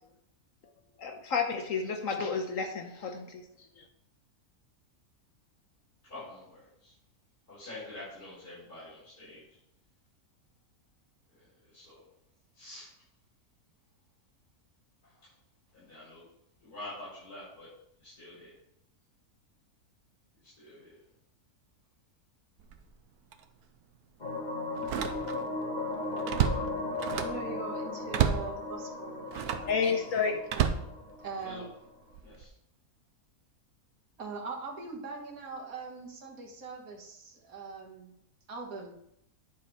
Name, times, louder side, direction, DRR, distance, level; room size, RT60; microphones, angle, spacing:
voice 1, 1.0-3.4 3.8-3.9 29.7-30.5, left 5 dB, 65° left, 5 dB, 1.2 m, -31 dB
voice 2, 6.0-6.9 7.5-9.6 11.3-12.0 12.5-12.9 15.0-15.3 15.7-16.2 16.6-17.7 18.0-18.6 20.4-21.0 31.4-31.6 32.2-32.5, left 2 dB, 85° left, -11 dB, 4.6 m, -47 dB
Slam, 22.6-22.9 23.3-23.4 24.8-25.6 25.9-27.5 28.1-28.5 29.3-29.7 30.5-31.5 32.1-32.4, right 8 dB, 85° right, 1.2 m, -30 dB
sound 1, 24.2-31.8, left 2 dB, 35° left, 1.2 m, -37 dB
voice 3, 27.1-30.0 31.2-31.7 34.2-38.1 38.5-39.0, right 4 dB, 65° right, -2 dB, 2.1 m, -42 dB
10.0 x 5.0 x 4.3 m, 0.76 s
omnidirectional pair, 1.6 m